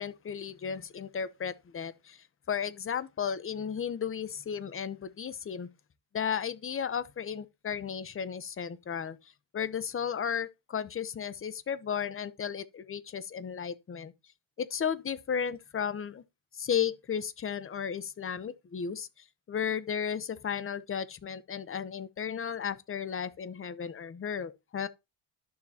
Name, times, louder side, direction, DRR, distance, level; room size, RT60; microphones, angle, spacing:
voice 1, 0.0-2.2 2.5-5.7 6.1-9.2 9.5-14.1 14.6-16.2 16.6-19.1 19.5-24.9, left 7 dB, 30° left, 0.8 m, -34 dB
12.0 x 6.8 x 2.8 m
cardioid pair, 130°, 46 cm